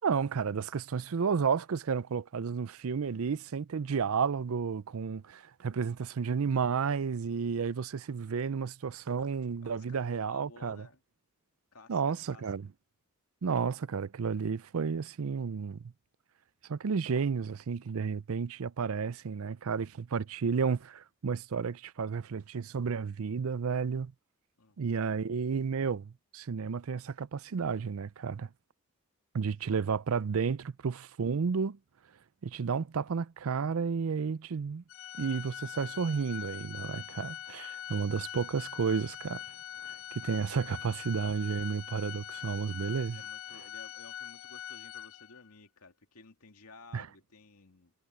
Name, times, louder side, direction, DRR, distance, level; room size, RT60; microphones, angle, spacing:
voice 1, 0.0-10.9 11.9-12.7 13.4-15.8 16.6-24.1 24.8-28.5 29.3-31.8 32.4-34.8 35.2-39.4 39.8-43.2 46.9-47.1, right 6 dB, 75° right, 0.5 m, -32 dB
voice 2, 9.6-11.0 11.7-12.5 24.6-25.0 43.0-47.9, left 3 dB, 85° left, 2.5 m, -55 dB
Organ, 34.9-45.5, left 11 dB, 60° left, 0.3 m, -43 dB
head